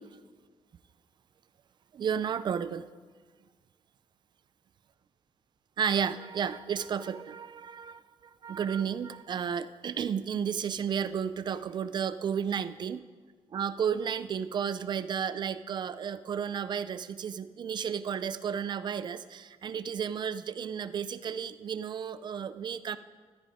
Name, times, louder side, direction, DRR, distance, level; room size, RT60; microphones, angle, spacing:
voice 1, 1.9-2.8 5.8-13.0 13.5-23.0, right 7 dB, 40° right, 14 dB, 0.5 m, -32 dB
13.5 x 13.0 x 5.0 m, 1.5 s
wide cardioid pair, 170°, 11 cm